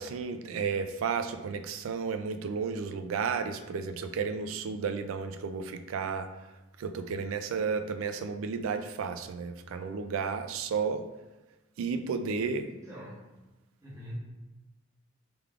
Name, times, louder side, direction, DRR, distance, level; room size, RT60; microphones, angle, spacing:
voice 1, 0.0-6.3 6.8-11.0 11.8-12.7, right 5 dB, 80° right, 8 dB, 0.3 m, -32 dB
voice 2, 12.9-13.3 13.8-14.2, equal, 15° right, -6 dB, 0.8 m, -42 dB
3.4 x 3.3 x 2.3 m, 1.1 s
head